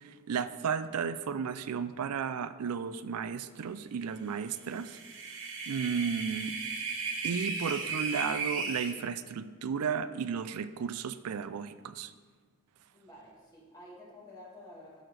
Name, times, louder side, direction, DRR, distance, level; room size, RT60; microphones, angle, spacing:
voice 1, 0.0-5.0 5.7-6.5 7.2-12.1, right 6 dB, 90° right, 12 dB, 0.4 m, -34 dB
sound 1, 4.6-8.9, right 4 dB, 65° right, 1.2 m, -35 dB
voice 2, 12.9-15.0, left 1 dB, 20° left, -5 dB, 2.0 m, -51 dB
12.5 x 6.3 x 3.3 m, 1.5 s
head